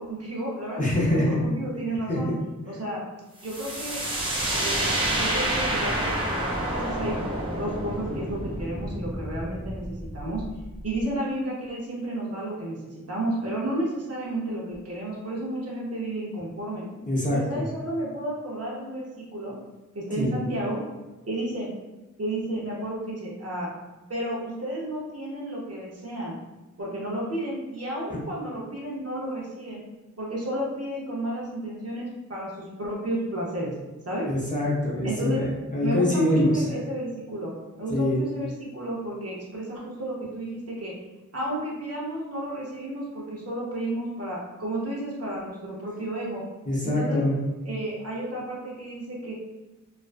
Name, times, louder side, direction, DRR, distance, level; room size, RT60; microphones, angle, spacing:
voice 1, 0.0-2.3 2.7-3.0 3.4-4.0 4.5-10.4 10.8-16.9 17.3-19.5 19.9-20.8 21.3-21.7 22.2-23.7 24.1-26.4 26.8-29.8 30.2-33.7 34.0-34.3 35.0-35.5 35.8-41.0 41.3-46.4 46.8-47.2 47.6-49.3, right 1 dB, 50° right, -4 dB, 0.7 m, -32 dB
voice 2, 0.8-1.4 2.1-2.2 17.1-17.6 20.2-20.4 34.3-36.6 37.9-38.2 46.7-47.3, left 1 dB, 25° left, -5 dB, 0.6 m, -24 dB
sound 1, 3.4-11.0, right 1 dB, 15° right, 0.6 m, -29 dB
2.4 x 2.1 x 2.4 m, 1.1 s
wide cardioid pair, 45°, 31 cm